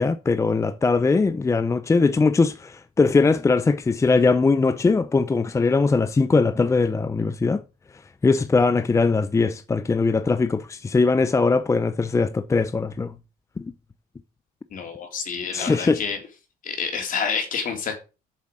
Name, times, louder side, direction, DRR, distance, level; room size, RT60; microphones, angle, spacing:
voice 1, 0.0-7.6 8.2-13.1 13.6-13.7 15.5-16.0, left 4 dB, 15° left, 0.6 m, -20 dB
voice 2, 14.7-16.2 16.6-17.9, left 6 dB, 55° left, 3.3 m, -28 dB
7.4 x 7.2 x 6.3 m
cardioid pair, 110°, 17 cm